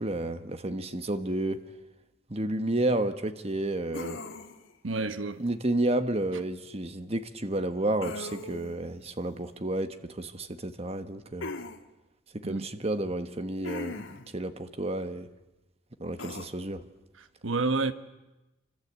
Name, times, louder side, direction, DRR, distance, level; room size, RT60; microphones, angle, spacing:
voice 1, 0.0-1.6 2.3-4.2 5.4-11.5 12.3-14.0 14.3-15.3 16.0-16.8, right 1 dB, 30° right, 1.4 m, -31 dB
sound 1, 3.9-4.7 8.0-8.8 11.4-11.8 13.6-14.3 16.2-16.5, left 2 dB, 80° left, 1.9 m, -38 dB
voice 2, 4.8-5.4 6.3-6.4 12.4-12.7 17.2-17.9, right 3 dB, 80° right, 1.3 m, -30 dB
28.0 x 25.5 x 8.4 m
head